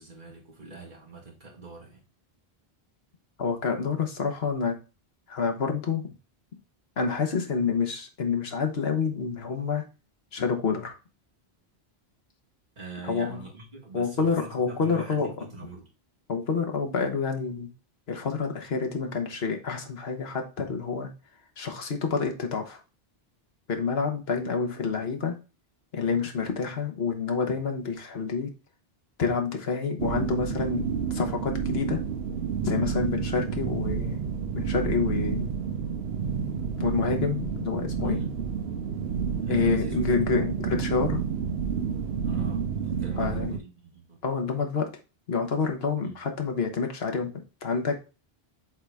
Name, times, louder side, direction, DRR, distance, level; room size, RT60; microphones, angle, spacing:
voice 1, 0.0-2.0 12.8-15.9 38.0-38.4 39.4-40.0 42.2-42.6 43.0-44.2 46.0-46.2, right 3 dB, 50° right, 2.1 m, -43 dB
voice 2, 3.4-4.8 5.3-6.1 7.0-9.8 10.3-10.9 13.0-13.4 13.9-15.3 16.3-17.7 18.1-21.1 21.6-22.8 23.7-25.4 25.9-28.5 29.2-32.0 32.6-34.2 34.5-35.5 36.8-38.2 39.5-41.2 43.2-43.5 44.2-44.9 45.3-47.3 47.6-48.0, left 5 dB, 80° left, 1.4 m, -28 dB
sound 1, 30.0-43.6, right 6 dB, 80° right, 0.9 m, -30 dB
7.2 x 3.9 x 3.5 m
omnidirectional pair, 1.0 m